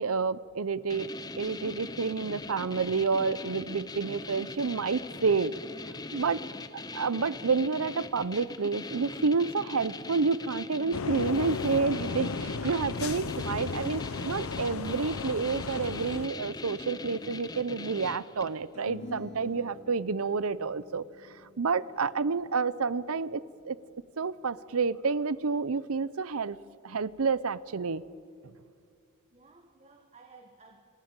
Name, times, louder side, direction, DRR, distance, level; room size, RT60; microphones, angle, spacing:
voice 1, 0.0-5.5 6.1-6.4 6.7-21.0 21.6-23.8 24.2-26.6 26.8-28.0 28.4-28.5, right 4 dB, 80° right, 17 dB, 0.7 m, -29 dB
sound 1, 0.9-18.6, left 3 dB, 20° left, 0.7 m, -41 dB
voice 2, 6.2-6.6 29.3-30.8, right 3 dB, 30° right, 4 dB, 1.5 m, -56 dB
sound 2, 10.9-16.3, left 4 dB, 75° left, 0.7 m, -35 dB
sound 3, 18.7-25.3, left 2 dB, 60° left, 7.1 m, -50 dB
29.0 x 14.0 x 8.9 m, 2.3 s
head